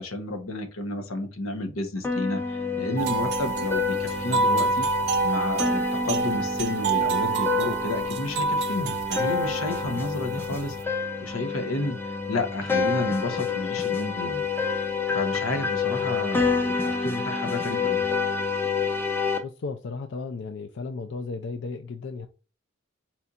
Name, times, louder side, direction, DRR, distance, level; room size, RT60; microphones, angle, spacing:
voice 1, 0.0-4.9 5.2-10.8 11.2-14.4 15.1-18.1, left 2 dB, 85° left, 1.0 m, -31 dB
sound 1, 2.0-19.4, left 5 dB, 10° left, 0.6 m, -28 dB
sound 2, 3.0-10.8, right 4 dB, 55° right, 0.4 m, -27 dB
voice 2, 19.4-22.3, left 4 dB, 60° left, 0.4 m, -34 dB
4.4 x 4.1 x 2.4 m
head